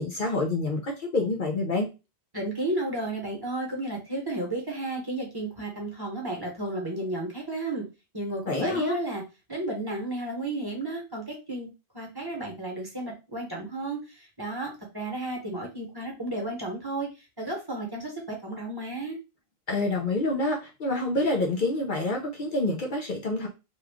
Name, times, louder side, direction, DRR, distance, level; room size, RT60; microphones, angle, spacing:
voice 1, 0.0-1.9 8.5-9.0 19.7-23.5, left 2 dB, 55° left, 1 dB, 0.8 m, -27 dB
voice 2, 2.3-7.8 8.1-9.2 9.5-11.7 11.9-17.1 17.4-19.2, right 2 dB, 25° right, -1 dB, 1.0 m, -33 dB
3.1 x 2.4 x 3.4 m, 0.28 s
omnidirectional pair, 1.1 m